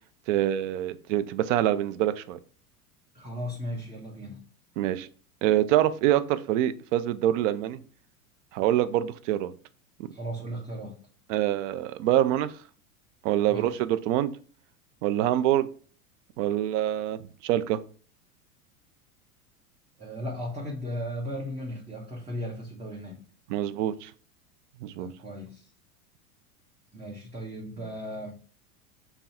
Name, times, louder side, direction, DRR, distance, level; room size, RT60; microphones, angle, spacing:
voice 1, 0.3-2.4 4.8-5.1 5.4-7.8 8.5-9.5 11.3-12.5 13.2-14.3 15.0-15.7 16.4-17.8 23.5-24.1 24.8-25.1, right 12 dB, 55° right, 0.6 m, -25 dB
voice 2, 3.1-4.4 10.1-11.0 13.5-13.8 20.0-23.2 25.0-25.7 26.9-28.3, equal, 15° right, 1.2 m, -36 dB
5.4 x 2.3 x 4.3 m
hypercardioid pair, 95°, 44 cm